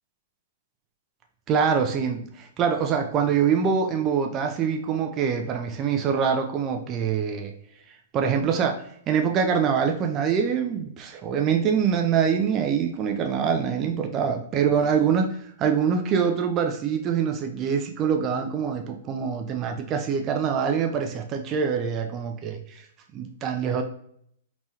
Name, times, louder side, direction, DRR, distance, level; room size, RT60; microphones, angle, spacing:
voice 1, 1.5-7.5 8.1-15.3 15.6-22.8 23.1-23.8, right 7 dB, 30° right, 3 dB, 0.4 m, -24 dB
2.9 x 2.3 x 2.8 m, 0.67 s
hypercardioid pair, 110°, 0 cm